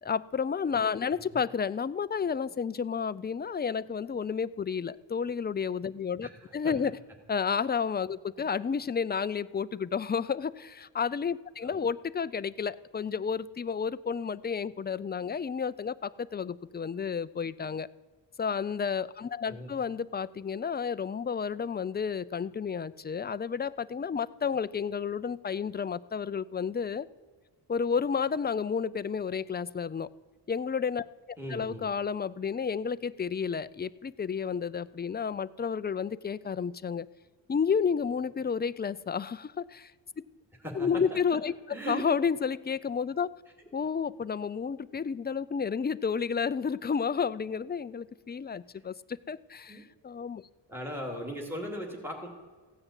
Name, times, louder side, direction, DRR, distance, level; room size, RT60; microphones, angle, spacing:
voice 1, 0.0-7.0 7.3-17.9 18.4-27.1 27.7-30.1 30.5-37.1 37.5-39.9 40.7-43.3 43.7-48.9 49.3-50.4, left 6 dB, 25° left, 16 dB, 0.4 m, -31 dB
voice 2, 31.4-31.9 40.6-41.2 41.7-42.0 49.7-49.8 50.7-52.3, right 1 dB, 5° right, 0 dB, 2.3 m, -38 dB
15.5 x 9.9 x 8.1 m, 1.4 s
wide cardioid pair, 105°, 46 cm